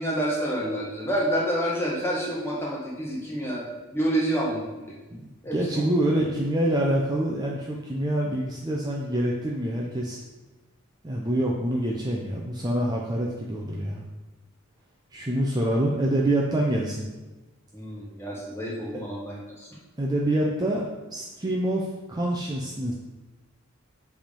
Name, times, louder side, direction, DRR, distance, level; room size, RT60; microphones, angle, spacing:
voice 1, 0.0-5.0 5.4-5.8 17.7-19.7, right 1 dB, 10° left, -5 dB, 1.6 m, -28 dB
voice 2, 5.1-10.2 11.0-14.0 15.1-17.1 20.0-22.9, right 1 dB, 20° right, -3 dB, 0.6 m, -26 dB
7.7 x 3.5 x 5.3 m, 1.1 s
head